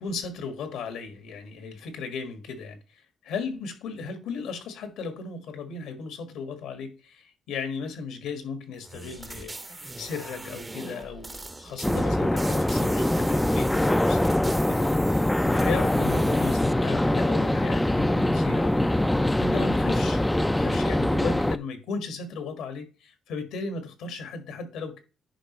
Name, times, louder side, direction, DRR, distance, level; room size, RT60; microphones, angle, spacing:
voice 1, 0.0-3.0 3.2-25.0, left 5 dB, 90° left, 1.6 m, -36 dB
sound 1, 8.8-16.7, right 2 dB, 20° right, 0.7 m, -40 dB
sound 2, 11.8-21.6, left 1 dB, 10° left, 0.3 m, -23 dB
9.9 x 5.2 x 3.1 m
cardioid pair, 90°, 0 cm